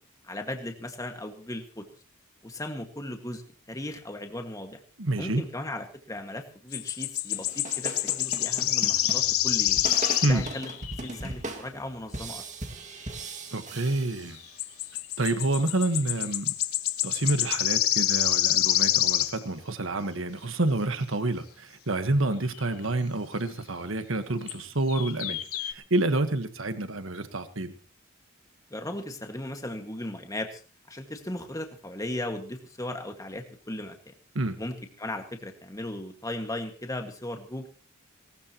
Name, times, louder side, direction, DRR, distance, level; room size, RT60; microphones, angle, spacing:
voice 1, 0.2-1.9 2.4-3.4 3.7-4.8 5.2-9.8 10.2-10.7 11.0-12.4 28.7-30.6 30.9-34.1 34.6-37.7, left 1 dB, 15° left, 5 dB, 1.8 m, -37 dB
voice 2, 5.0-5.4 10.2-10.5 13.5-14.4 15.2-16.5 17.0-25.4 25.6-27.7 34.3-34.6, right 2 dB, 65° right, 10 dB, 1.4 m, -28 dB
sound 1, 6.7-11.3 14.6-19.4 22.6-22.7 24.5-24.6 24.9-25.7, left 13 dB, 85° left, 1.1 m, -27 dB
sound 2, 7.3-14.7, right 2 dB, 35° right, 2.0 m, -39 dB
19.0 x 19.0 x 3.0 m, 0.36 s
head